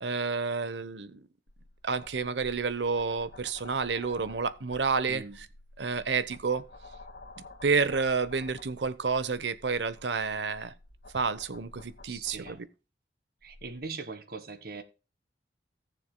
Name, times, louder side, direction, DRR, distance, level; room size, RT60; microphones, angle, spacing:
voice 1, 0.0-1.2 1.8-5.2 5.8-6.6 7.6-10.7 11.1-12.6, right 4 dB, 80° right, 0.9 m, -29 dB
sound 1, 1.5-12.6 13.4-13.8, left 2 dB, 75° left, 2.1 m, -51 dB
voice 2, 5.1-5.4 12.0-12.7 13.4-14.8, right 4 dB, 60° right, 1.5 m, -41 dB
18.0 x 6.9 x 2.2 m
head